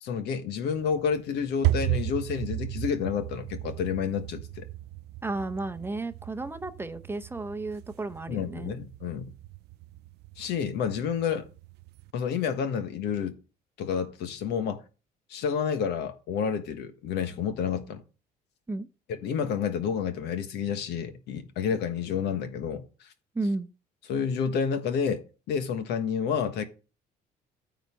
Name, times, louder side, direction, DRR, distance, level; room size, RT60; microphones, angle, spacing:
voice 1, 0.0-4.7 8.3-9.3 10.4-11.5 12.1-13.4 13.8-14.8 15.3-18.0 19.1-22.8 24.1-25.2 25.5-26.6, left 7 dB, 80° left, 1.3 m, -29 dB
sound 1, 0.7-12.1, right 17 dB, 80° right, 0.4 m, -35 dB
voice 2, 5.2-8.7 18.7-18.9 23.3-23.7, right 2 dB, 15° right, 0.7 m, -33 dB
9.4 x 4.0 x 7.0 m
cardioid pair, 110°, 17 cm